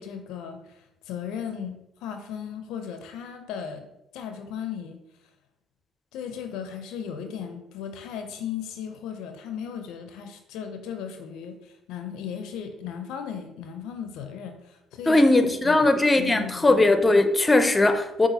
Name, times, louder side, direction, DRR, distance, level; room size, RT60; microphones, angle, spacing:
voice 1, 0.0-3.9 4.1-5.0 6.1-15.4 15.6-15.9 16.2-16.8, left 8 dB, 70° left, 0.4 m, -36 dB
voice 2, 15.1-18.3, left 2 dB, 20° left, 0.5 m, -19 dB
6.8 x 2.4 x 2.7 m
hypercardioid pair, 50°, 0 cm